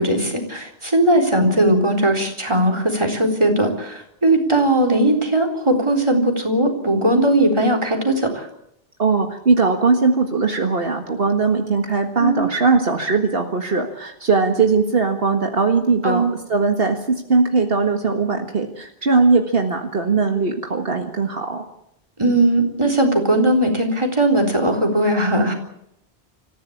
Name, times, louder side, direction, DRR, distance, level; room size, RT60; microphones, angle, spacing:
voice 1, 0.0-8.5 12.2-12.4 16.0-16.3 22.2-25.5, right 1 dB, 25° right, 5 dB, 4.0 m, -18 dB
voice 2, 9.0-21.6, right 4 dB, 65° right, 3 dB, 2.0 m, -19 dB
25.5 x 15.0 x 8.7 m, 0.76 s
omnidirectional pair, 1.1 m